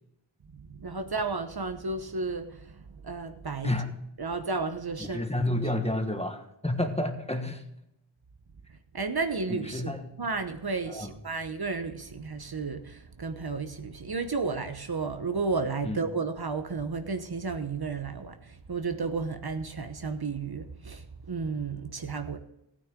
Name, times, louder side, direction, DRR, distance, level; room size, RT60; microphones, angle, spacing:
voice 1, 0.5-3.8 4.2-5.2 8.9-22.4, right 4 dB, 50° right, 0.9 m, -33 dB
voice 2, 5.0-7.6 9.5-10.1 10.9-11.1 15.8-16.0, left 1 dB, 15° left, 1.4 m, -30 dB
14.5 x 9.5 x 3.7 m
wide cardioid pair, 65°, 48 cm